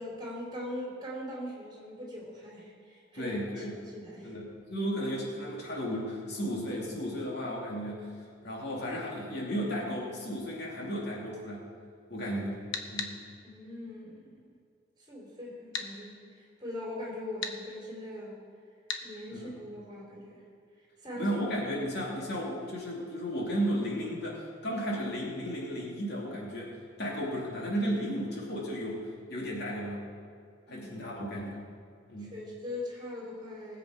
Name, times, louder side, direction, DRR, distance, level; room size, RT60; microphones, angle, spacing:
voice 1, 0.0-4.4 13.4-14.5 15.0-18.4 19.0-20.4 21.0-21.4 30.7-30.9 32.2-33.8, left 1 dB, 25° right, -3 dB, 3.4 m, -41 dB
voice 2, 3.1-3.7 4.2-8.1 8.4-11.6 12.1-12.6 12.9-13.1 19.3-19.4 21.2-30.0 30.7-31.6 32.1-32.3, equal, 60° left, -3 dB, 2.7 m, -34 dB
sound 1, 12.7-13.1 15.7-15.9 17.4-17.6 18.9-19.1, left 6 dB, 75° left, 1.0 m, -34 dB
19.5 x 7.8 x 4.9 m, 2.2 s
head